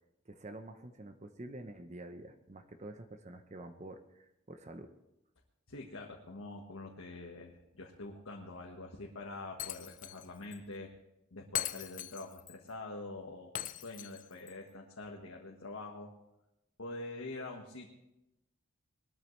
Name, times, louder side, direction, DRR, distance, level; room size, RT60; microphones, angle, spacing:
voice 1, 0.3-4.9, right 1 dB, 35° right, 7 dB, 0.8 m, -48 dB
voice 2, 5.7-10.9 11.3-16.1 16.8-17.9, left 2 dB, 80° left, 0 dB, 1.4 m, -45 dB
Shatter, 9.6-10.3 10.5-10.6 11.5-12.5 13.5-14.5, left 11 dB, 40° left, 0.4 m, -40 dB
20.5 x 13.0 x 3.2 m, 0.91 s
head